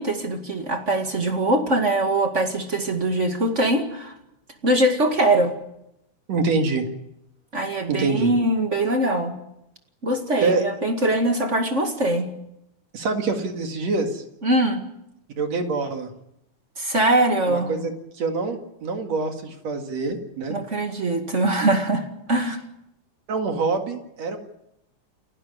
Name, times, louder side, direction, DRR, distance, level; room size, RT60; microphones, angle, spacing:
voice 1, 0.0-4.2 4.6-5.5 7.5-9.3 10.0-12.3 14.4-14.8 16.8-17.7 20.5-22.6, right 1 dB, 25° right, 5 dB, 1.9 m, -22 dB
voice 2, 6.3-6.9 7.9-8.3 10.4-10.6 12.9-14.2 15.4-16.1 17.5-17.9 18.2-20.6 21.6-21.7 23.3-24.4, right 3 dB, 60° right, 5 dB, 3.1 m, -25 dB
29.5 x 11.5 x 9.7 m, 0.83 s
omnidirectional pair, 3.6 m